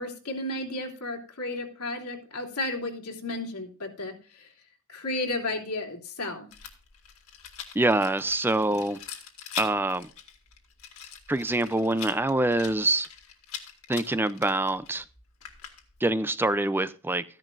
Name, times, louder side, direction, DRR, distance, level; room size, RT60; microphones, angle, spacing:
voice 1, 0.0-4.5 4.9-6.5, left 2 dB, 90° left, 3.1 m, -33 dB
Rattle, 6.5-16.1, left 8 dB, 70° left, 2.2 m, -43 dB
voice 2, 7.7-9.0 9.6-10.1 11.3-13.1 13.9-15.0 16.0-17.2, right 2 dB, 10° right, 0.4 m, -25 dB
15.0 x 10.5 x 2.5 m
head